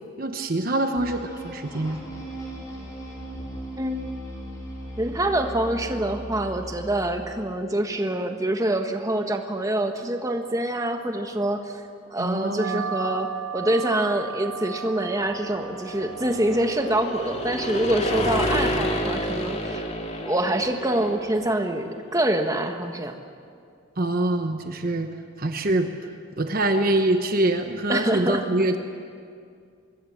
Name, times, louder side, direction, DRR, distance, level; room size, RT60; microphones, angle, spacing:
voice 1, 0.2-2.0 12.2-12.8 24.0-25.1 25.4-26.1 26.4-28.8, right 1 dB, 45° right, 6 dB, 1.1 m, -24 dB
sound 1, 1.0-7.5, right 1 dB, 15° left, 4.7 m, -38 dB
voice 2, 5.0-11.8 12.1-19.9 20.2-23.1 27.9-28.4, right 1 dB, 15° right, 5 dB, 1.4 m, -25 dB
sound 2, 12.6-21.6, right 6 dB, 85° right, 1.1 m, -37 dB
sound 3, 14.7-21.6, left 1 dB, 30° left, 2.4 m, -30 dB
25.0 x 21.5 x 7.4 m, 2.3 s
head